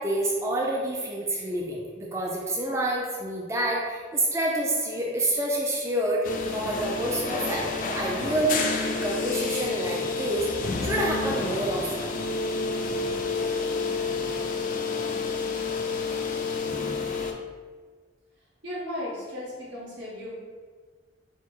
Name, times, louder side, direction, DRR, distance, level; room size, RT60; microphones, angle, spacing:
voice 1, 0.0-6.2 6.5-10.5 10.8-12.1, right 1 dB, 15° right, -2 dB, 0.4 m, -28 dB
sound 1, 6.2-17.3, left 4 dB, 45° left, 0.4 m, -29 dB
voice 2, 18.6-20.3, left 1 dB, 80° right, -6 dB, 1.4 m, -35 dB
4.4 x 2.0 x 4.5 m, 1.5 s
head